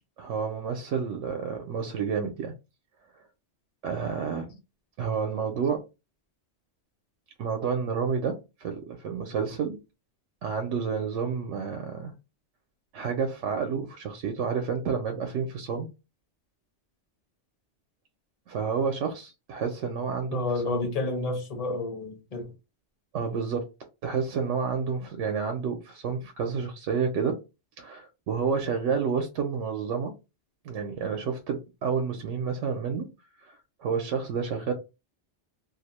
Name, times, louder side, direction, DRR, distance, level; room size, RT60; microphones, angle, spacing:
voice 1, 0.2-2.5 3.8-4.6 5.0-5.8 7.4-9.8 10.4-12.1 12.9-15.9 18.5-20.9 23.1-23.7 24.0-27.4 27.8-30.1 30.6-33.1 33.4-34.7, right 6 dB, 85° right, 0.9 m, -30 dB
voice 2, 20.3-22.5, left 2 dB, 40° left, 0.6 m, -30 dB
2.6 x 2.0 x 2.9 m
omnidirectional pair, 1.2 m